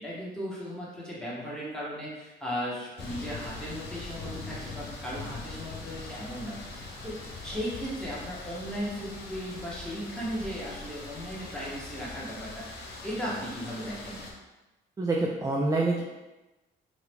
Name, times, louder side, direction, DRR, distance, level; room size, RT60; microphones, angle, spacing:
voice 1, 0.0-14.2, equal, 5° left, -7 dB, 1.1 m, -37 dB
sound 1, 3.0-14.3, left 3 dB, 55° left, 0.7 m, -42 dB
voice 2, 15.0-16.0, right 2 dB, 15° right, -1 dB, 0.4 m, -26 dB
2.8 x 2.5 x 3.3 m, 1.1 s
cardioid pair, 90°, 20 cm